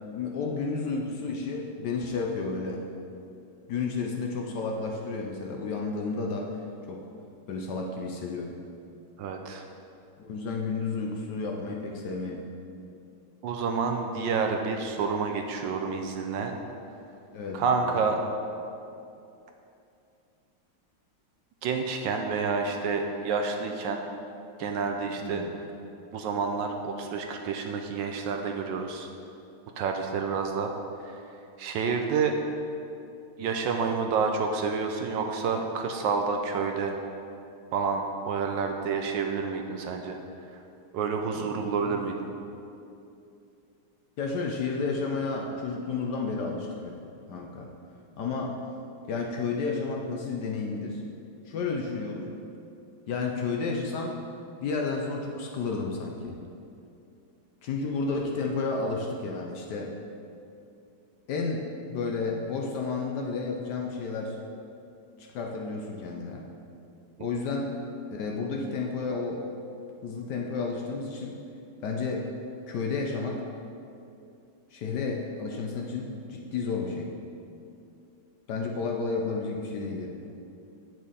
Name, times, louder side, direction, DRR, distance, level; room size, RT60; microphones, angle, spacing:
voice 1, 0.1-2.9 3.7-6.6 6.9-7.1 7.5-8.6 10.2-12.5 17.3-18.0 25.2-25.5 41.4-42.1 44.2-47.0 47.3-47.7 48.2-48.6 49.1-51.0 51.5-52.3 53.1-54.2 54.6-56.4 57.6-59.9 61.3-64.4 65.2-66.5 67.2-67.7 68.1-69.4 70.0-71.4 71.8-72.3 72.7-73.4 74.7-77.1 78.5-80.1, left 4 dB, 65° left, 1 dB, 1.1 m, -31 dB
voice 2, 9.2-9.6 13.4-16.5 17.5-18.2 21.6-24.0 24.6-25.4 26.1-29.1 29.8-30.7 31.0-31.2 31.6-32.4 33.4-37.0 37.7-40.2 40.9-42.3, right 5 dB, 75° right, 4 dB, 1.2 m, -29 dB
8.7 x 6.3 x 4.1 m, 2.7 s
omnidirectional pair, 2.2 m